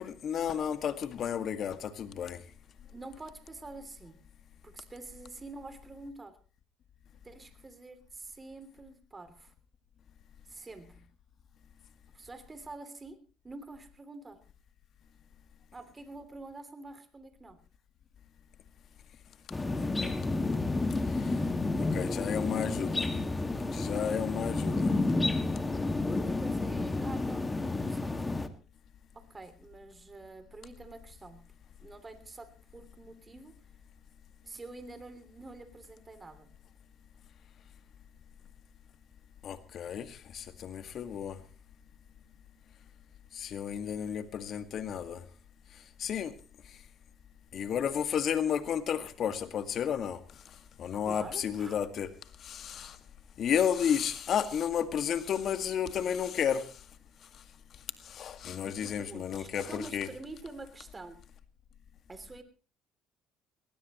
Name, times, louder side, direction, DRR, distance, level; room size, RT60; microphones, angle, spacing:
voice 1, 0.0-2.4 20.0-20.1 21.1-21.4 21.9-23.1 23.6-24.9 39.4-41.4 43.3-45.2 46.0-46.3 47.5-50.2 50.8-52.1 52.4-53.0 53.4-56.7 58.0-60.1, left 8 dB, 55° left, 1.9 m, -32 dB
voice 2, 2.9-4.2 4.6-6.4 7.2-9.5 10.5-11.0 12.1-13.2 13.4-14.4 15.7-17.6 26.0-28.1 29.1-31.4 31.8-33.5 34.4-36.5 51.0-51.7 58.6-61.2 62.1-62.4, right 3 dB, 25° right, 3.0 m, -47 dB
sound 1, 19.5-28.5, left 2 dB, 20° left, 2.0 m, -30 dB
20.0 x 18.5 x 3.1 m
supercardioid pair, 75°, 0 cm